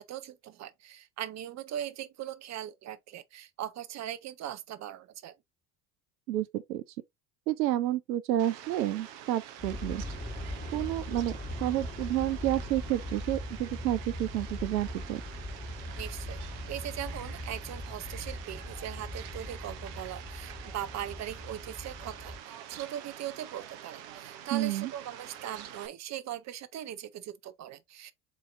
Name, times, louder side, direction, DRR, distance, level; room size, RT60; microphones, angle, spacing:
voice 1, 0.0-5.3 16.0-16.4 16.7-28.1, right 11 dB, 35° right, 0.7 m, -40 dB
voice 2, 6.3-6.8 7.5-10.0 10.7-11.3 11.6-15.2 24.5-24.9, right 14 dB, 80° right, 0.6 m, -30 dB
Fowl, 8.4-25.9, right 10 dB, 60° right, 1.0 m, -47 dB
Aircraft, 9.6-22.4, left 1 dB, 15° left, 1.2 m, -40 dB
7.4 x 2.8 x 2.5 m
hypercardioid pair, 70°, 50 cm